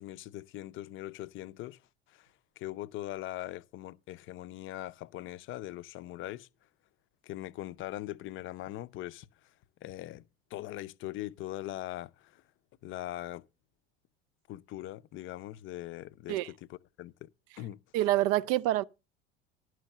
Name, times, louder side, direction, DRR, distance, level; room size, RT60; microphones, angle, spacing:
voice 1, 0.0-1.8 2.1-2.3 2.6-6.5 7.2-9.3 9.8-10.2 10.5-12.4 12.8-13.4 14.5-16.4 16.7-17.3 17.6-17.8, left 15 dB, 40° left, 0.6 m, -41 dB
voice 2, 17.9-18.8, right 15 dB, 50° right, 0.5 m, -26 dB
11.5 x 6.2 x 6.6 m
hypercardioid pair, 70°, 30 cm